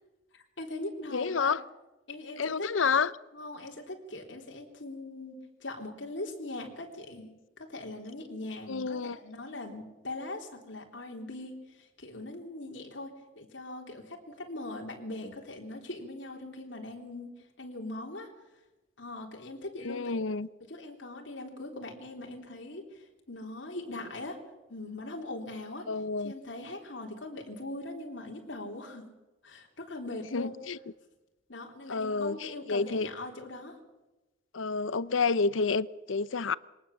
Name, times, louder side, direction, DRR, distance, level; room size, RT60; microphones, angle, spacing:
voice 1, 0.3-1.6 2.1-2.7 3.3-5.4 5.6-18.3 19.0-20.2 20.6-24.4 24.7-25.9 26.2-29.1 29.4-30.5 31.5-33.8, left 2 dB, 70° left, 3.6 m, -41 dB
voice 2, 1.1-1.6 2.4-3.1 8.7-9.2 19.8-20.5 25.9-26.3 30.3-30.8 31.9-33.1 34.5-36.5, left 4 dB, 85° left, 0.7 m, -29 dB
23.0 x 19.0 x 7.2 m
head